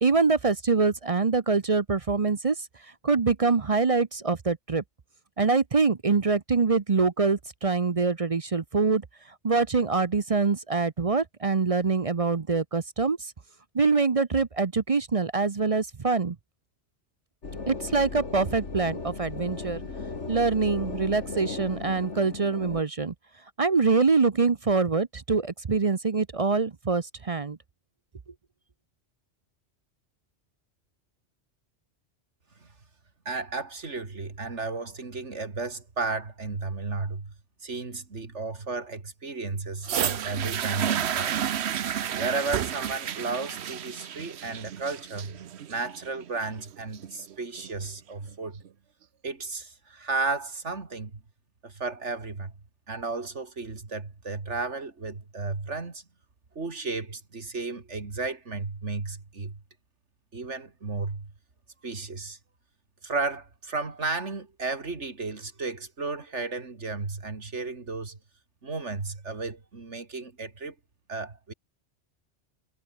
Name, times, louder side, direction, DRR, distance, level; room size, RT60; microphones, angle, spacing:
voice 1, 0.0-2.5 3.0-4.8 5.4-9.0 9.4-13.2 13.7-16.3 17.7-19.8 20.3-23.1 23.6-27.6, right 4 dB, 35° right, 0.8 m, -24 dB
sound 1, 17.4-22.8, left 4 dB, 85° left, 2.8 m, -36 dB
voice 2, 33.2-37.3 37.6-41.4 42.1-45.4 45.7-48.6 49.2-51.2 51.6-52.5 52.9-56.0 56.5-59.6 60.3-61.3 61.8-62.4 63.0-68.2 68.6-70.7 71.1-71.5, right 3 dB, 90° right, 3.0 m, -33 dB
sound 2, 39.8-47.8 48.6-48.7, right 9 dB, 70° right, 1.1 m, -31 dB
omnidirectional pair, 1.2 m